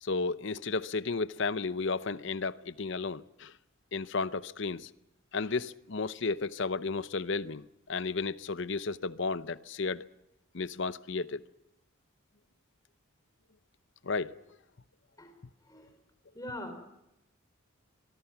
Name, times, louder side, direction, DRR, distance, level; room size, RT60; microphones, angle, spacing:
voice 1, 0.0-3.5 3.9-4.9 5.3-10.1 10.5-11.4 14.0-14.4, left 4 dB, 60° left, 0.7 m, -33 dB
voice 2, 16.3-16.8, left 1 dB, 15° left, 4.1 m, -41 dB
24.5 x 23.0 x 5.9 m
head